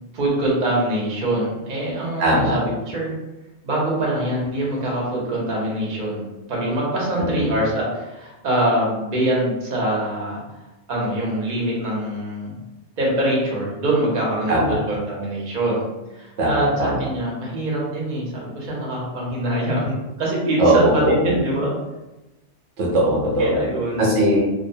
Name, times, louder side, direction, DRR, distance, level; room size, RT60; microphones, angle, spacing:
voice 1, 0.1-3.1 3.6-10.4 10.9-12.6 13.0-15.8 16.1-21.7 23.4-24.1, right 1 dB, 45° right, -4 dB, 0.8 m, -24 dB
voice 2, 2.2-2.6 7.2-7.5 14.5-14.8 16.4-16.9 20.6-21.1 22.8-23.5 24.0-24.4, right 1 dB, 75° right, -3 dB, 0.9 m, -19 dB
2.6 x 2.1 x 2.6 m, 1.0 s
omnidirectional pair, 1.2 m